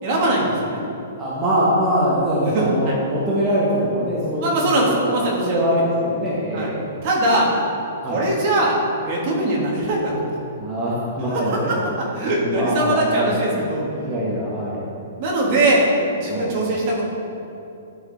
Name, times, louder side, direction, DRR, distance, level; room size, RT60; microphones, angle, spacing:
voice 1, 0.0-0.8 2.4-3.0 4.4-5.6 6.5-6.7 7.0-7.5 8.1-8.7 9.0-10.2 11.3-11.8 12.2-14.2 15.2-15.9 16.1-17.1, right 1 dB, 30° right, -3 dB, 1.6 m, -21 dB
voice 2, 1.2-5.1 5.4-6.8 8.0-8.2 10.6-11.8 12.2-13.4 14.0-14.8 16.3-16.5, equal, 10° right, -9 dB, 1.1 m, -23 dB
11.5 x 5.8 x 4.0 m, 2.7 s
hypercardioid pair, 175°, 0 cm